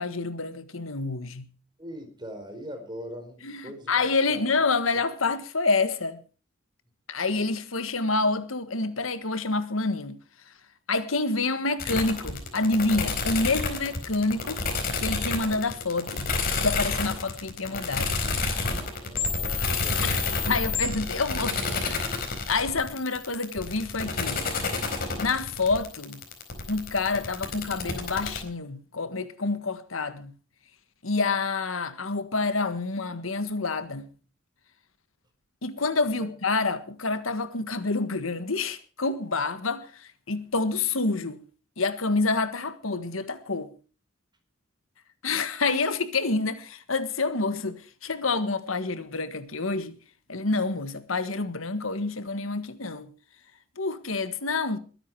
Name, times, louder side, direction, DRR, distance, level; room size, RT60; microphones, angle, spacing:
voice 1, 0.0-1.5 3.4-6.2 7.1-10.2 10.9-14.6 15.0-16.3 16.6-18.2 20.0-20.2 20.5-22.1 22.5-24.4 25.2-26.2 26.7-30.3 31.0-34.1 35.6-41.4 41.8-43.7 45.2-50.0 50.3-53.1 53.8-54.8, left 3 dB, 90° left, 1.6 m, -28 dB
voice 2, 1.8-4.7 19.0-20.6 36.2-36.3, equal, 20° right, 4.5 m, -42 dB
sound 1, 11.8-28.4, left 4 dB, 50° left, 4.4 m, -29 dB
22.0 x 10.0 x 4.8 m
head